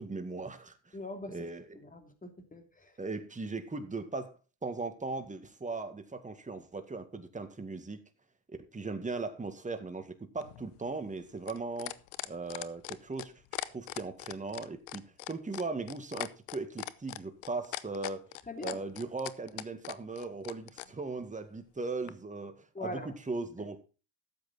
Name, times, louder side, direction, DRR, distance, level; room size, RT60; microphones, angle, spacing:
voice 1, 0.0-1.0 1.3-1.8 3.0-8.0 8.5-12.0 12.3-18.3 18.6-23.9, right 3 dB, 15° right, 2.0 m, -38 dB
voice 2, 0.9-1.5 1.7-3.0 18.5-18.8 22.7-23.1 23.6-23.7, left 2 dB, 15° left, 3.0 m, -42 dB
sound 1, 10.4-20.9 22.1-22.2, left 18 dB, 85° left, 0.9 m, -40 dB
13.0 x 8.2 x 4.2 m
supercardioid pair, 90°, 49 cm